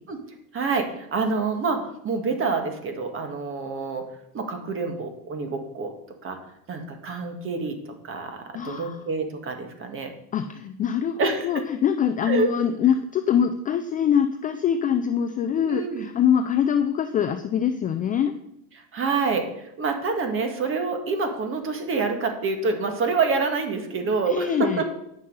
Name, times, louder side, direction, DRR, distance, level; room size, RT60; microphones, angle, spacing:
voice 1, 0.5-4.1 4.3-5.9 6.2-6.4 6.7-10.1 11.2-11.6 12.2-12.5 15.7-16.0 18.9-24.8, right 4 dB, 30° right, 6 dB, 1.7 m, -27 dB
voice 2, 8.5-9.0 10.3-18.3 24.3-24.8, left 8 dB, 20° left, 8 dB, 0.3 m, -24 dB
9.5 x 6.4 x 5.4 m, 0.77 s
supercardioid pair, 125°, 41 cm